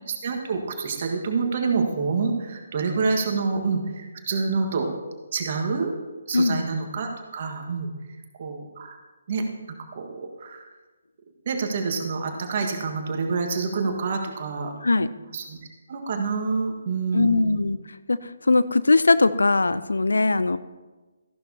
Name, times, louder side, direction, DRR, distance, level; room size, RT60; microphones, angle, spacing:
voice 1, 0.1-4.9 5.3-5.9 6.3-9.0 9.3-9.4 9.9-10.7 11.4-14.7 15.3-15.6 15.9-17.6, right 4 dB, 45° right, 3 dB, 1.6 m, -27 dB
voice 2, 6.3-6.7 14.8-15.2 17.1-17.8 18.1-20.6, left 3 dB, 75° left, 15 dB, 0.4 m, -20 dB
14.0 x 11.5 x 2.9 m, 1.2 s
figure-of-eight pair, 140°, 0 cm